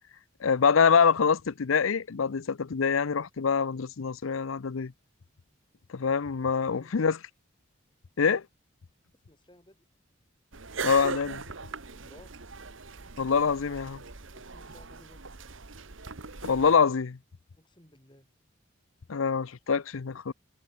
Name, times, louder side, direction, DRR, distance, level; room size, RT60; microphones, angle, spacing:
voice 1, 0.4-4.9 5.9-7.2 8.2-8.4 10.8-11.4 13.2-14.0 16.4-17.2 19.1-20.3, left 6 dB, 75° left, 0.6 m, -25 dB
voice 2, 6.4-6.9 9.3-9.8 11.9-12.3 14.2-15.3 17.6-18.3, left 1 dB, 20° left, 3.8 m, -57 dB
sound 1, 10.5-16.8, right 4 dB, 70° right, 1.6 m, -40 dB
head